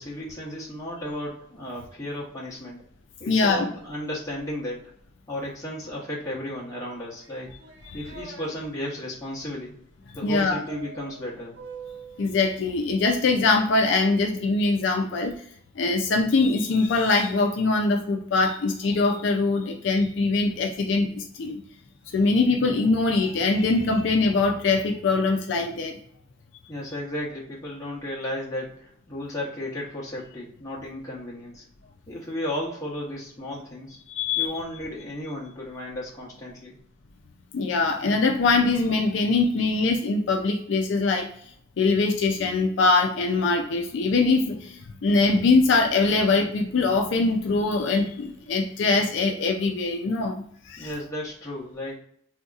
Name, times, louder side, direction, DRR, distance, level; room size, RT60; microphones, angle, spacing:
voice 1, 0.0-2.8 3.2-4.9 5.3-7.5 7.9-9.8 10.1-11.6 26.7-31.6 32.1-34.0 34.4-36.8 50.8-52.0, left 1 dB, 15° left, -5 dB, 0.9 m, -34 dB
voice 2, 3.3-3.7 10.2-10.6 12.2-15.3 15.8-21.6 22.1-26.0 34.1-34.5 37.5-41.3 41.8-50.9, left 3 dB, 65° left, 3 dB, 0.4 m, -22 dB
sound 1, 7.2-8.5 10.7-12.3, right 4 dB, 80° right, 1.0 m, -43 dB
3.6 x 2.8 x 2.3 m, 0.66 s
head